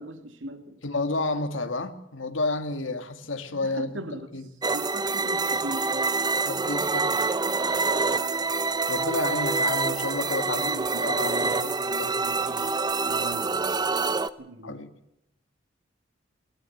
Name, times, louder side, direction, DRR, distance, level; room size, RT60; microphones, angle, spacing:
voice 1, 0.0-0.8 3.5-4.3 4.7-6.1 7.9-8.3 10.4-11.6 12.2-12.8 13.1-13.5 14.4-14.8, right 1 dB, 80° right, 2.0 m, -39 dB
voice 2, 0.8-4.1 4.3-4.5 6.5-7.2 8.9-10.7 11.0-12.2 14.6-14.9, left 3 dB, 90° left, 1.9 m, -31 dB
sound 1, 4.6-14.3, right 4 dB, 20° right, 0.8 m, -26 dB
20.5 x 19.0 x 7.9 m
head